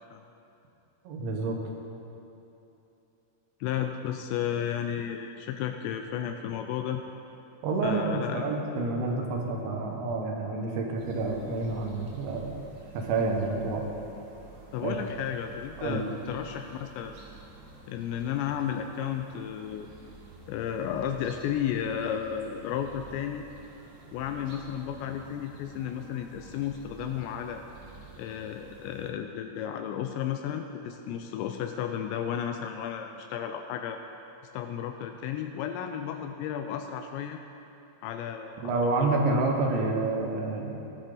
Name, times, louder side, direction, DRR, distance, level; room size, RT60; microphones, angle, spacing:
voice 1, 1.0-1.6 7.6-12.6 12.9-13.8 14.8-15.0 15.8-16.1 38.6-40.8, right 3 dB, 75° right, 1 dB, 3.5 m, -28 dB
voice 2, 3.6-7.0 7.8-8.5 14.7-17.2 17.9-19.9 20.5-23.5 24.1-27.6 28.2-34.0 34.5-37.4 38.0-39.2, left 9 dB, 85° left, 6 dB, 2.6 m, -33 dB
sound 1, 11.0-29.1, right 3 dB, 55° right, 2.8 m, -50 dB
17.5 x 11.0 x 3.9 m, 2.9 s
omnidirectional pair, 5.4 m